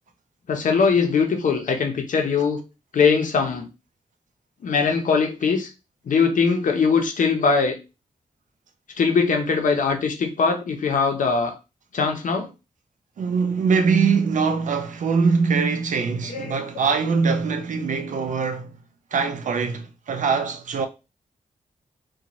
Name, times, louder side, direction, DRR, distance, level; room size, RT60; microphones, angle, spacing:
voice 1, 0.5-2.6 2.9-3.7 4.6-5.7 6.1-7.7 9.0-11.5 11.9-12.5 16.3-16.5, left 5 dB, 70° left, 0.6 m, -21 dB
voice 2, 13.2-18.7 19.1-20.9, right 5 dB, 65° right, 0.5 m, -22 dB
2.6 x 2.2 x 2.9 m
wide cardioid pair, 125°, 14 cm